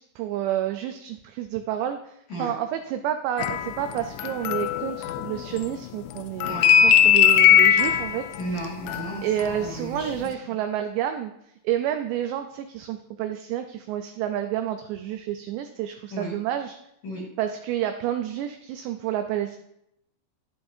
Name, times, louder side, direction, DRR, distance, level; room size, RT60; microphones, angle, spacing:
voice 1, 0.2-2.1 2.4-8.3 9.2-11.3 11.6-16.8 17.4-19.6, right 11 dB, 90° right, 7 dB, 2.5 m, -29 dB
sound 1, 3.4-5.8 6.1-9.7 10.0-10.3, left 9 dB, 85° left, 2.5 m, -20 dB
voice 2, 8.4-9.3 9.6-10.3 16.1-16.3 17.0-17.2, right 1 dB, 50° left, -3 dB, 2.3 m, -34 dB
11.5 x 10.0 x 2.7 m, 0.78 s
omnidirectional pair, 5.6 m